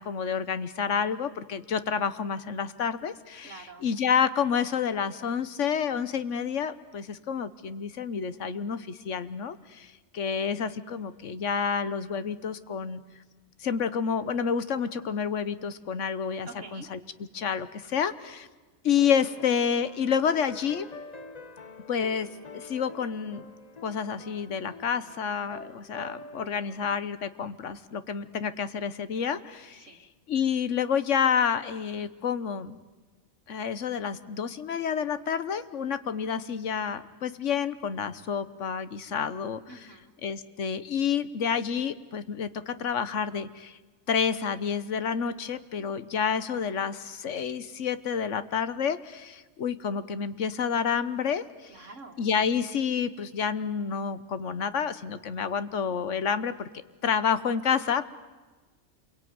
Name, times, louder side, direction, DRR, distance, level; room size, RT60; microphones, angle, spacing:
voice 1, 0.0-13.0 13.6-17.0 17.3-18.5 18.8-20.9 21.9-22.3 22.5-23.4 23.8-30.0 30.3-32.8 33.5-39.6 40.2-43.8 44.1-51.9 52.2-56.7 57.0-58.2, left 7 dB, 75° left, 13 dB, 1.4 m, -29 dB
voice 2, 3.4-3.9 16.4-16.9 29.8-30.0 39.7-40.1 51.7-52.2, right 3 dB, 75° right, 0 dB, 2.2 m, -46 dB
sound 1, 19.0-27.0, left 3 dB, 35° left, 1.1 m, -46 dB
27.5 x 23.0 x 9.5 m, 1.3 s
omnidirectional pair, 1.3 m